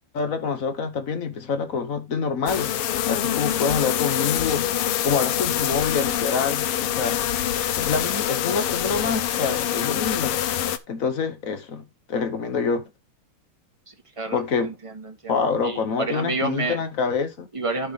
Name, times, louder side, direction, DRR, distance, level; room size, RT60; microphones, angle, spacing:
voice 1, 0.1-2.7 3.1-4.7 5.0-7.2 7.7-10.4 10.9-12.9 14.3-14.8 15.3-17.5, left 5 dB, 50° left, 1.2 m, -26 dB
sound 1, 2.5-10.8, left 11 dB, 85° left, 1.8 m, -25 dB
voice 2, 13.9-16.8 17.5-17.9, right 3 dB, 20° right, 1.1 m, -30 dB
11.5 x 5.5 x 3.6 m
omnidirectional pair, 2.4 m